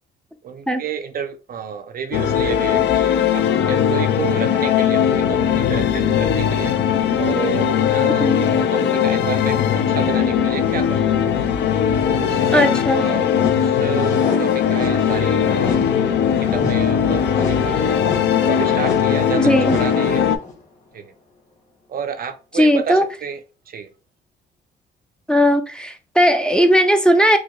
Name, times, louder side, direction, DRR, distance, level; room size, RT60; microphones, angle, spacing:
voice 1, 0.4-11.4 12.1-12.7 12.9-13.3 13.6-15.9 16.4-17.9 18.4-20.3 20.9-21.1 21.9-23.4 23.7-23.9, right 7 dB, 50° right, 0.5 m, -30 dB
sound 1, 2.1-20.4, left 8 dB, 60° left, 0.4 m, -19 dB
sound 2, 12.0-20.6, left 3 dB, 40° left, 1.6 m, -31 dB
voice 2, 12.5-13.0 19.4-19.8 22.5-23.1 25.3-27.4, equal, 5° left, 0.4 m, -16 dB
4.6 x 2.0 x 2.3 m
cardioid pair, 90°, 20 cm